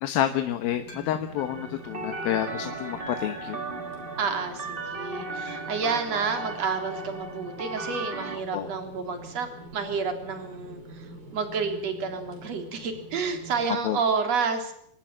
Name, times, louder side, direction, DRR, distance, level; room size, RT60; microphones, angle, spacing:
voice 1, 0.0-3.6 8.5-8.7 13.8-14.0, left 11 dB, 80° left, 8 dB, 3.0 m, -29 dB
sound 1, 0.6-13.7, right 2 dB, 70° right, 7.2 m, -45 dB
sound 2, 0.9-1.6 2.2-2.3 3.2-3.6 5.5-6.0 7.6-7.9 8.2-8.3 8.5-8.6 10.6-10.7, left 2 dB, 60° left, 6.6 m, -52 dB
sound 3, 1.4-8.4, right 2 dB, 25° right, 1.3 m, -36 dB
voice 2, 4.2-14.7, right 5 dB, 45° right, 6 dB, 4.5 m, -30 dB
25.5 x 19.0 x 7.5 m, 0.69 s
omnidirectional pair, 4.2 m